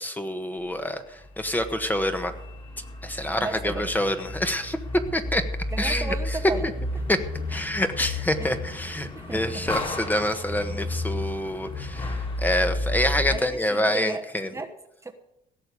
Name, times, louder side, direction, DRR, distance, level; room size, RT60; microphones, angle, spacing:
voice 1, 0.0-2.3 3.0-4.8 5.1-5.4 5.8-6.4 7.1-7.2 7.5-14.5, left 1 dB, 10° left, 8 dB, 1.3 m, -27 dB
sound 1, 1.2-13.4, left 2 dB, 30° left, 3.2 m, -32 dB
voice 2, 3.4-3.9 5.7-7.0 7.5-7.7 8.4-8.6 9.1-9.6 13.3-14.7 15.0-15.1, right 3 dB, 15° right, 4 dB, 1.1 m, -35 dB
17.0 x 6.8 x 8.2 m, 0.79 s
cardioid pair, 110°, 17 cm